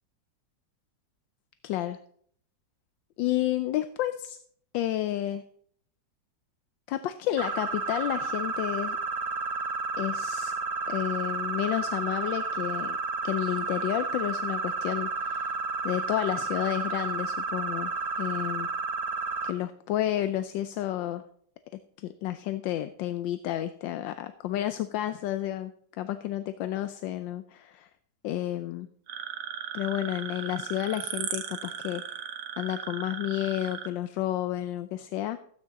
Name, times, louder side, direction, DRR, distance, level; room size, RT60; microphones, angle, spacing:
voice 1, 1.6-2.0 3.2-4.4 4.7-5.4 6.9-9.0 10.0-10.5 10.9-13.0 13.2-15.5 15.8-17.9 18.2-18.7 19.4-21.2 22.0-27.9 28.2-28.9 29.7-32.0 32.6-35.4, left 13 dB, 85° left, 11 dB, 1.3 m, -31 dB
sound 1, 7.4-19.5, right 3 dB, 65° right, 0.3 m, -31 dB
sound 2, 29.1-33.9, right 8 dB, 90° right, 1.8 m, -37 dB
15.0 x 9.6 x 4.1 m, 0.63 s
omnidirectional pair, 2.0 m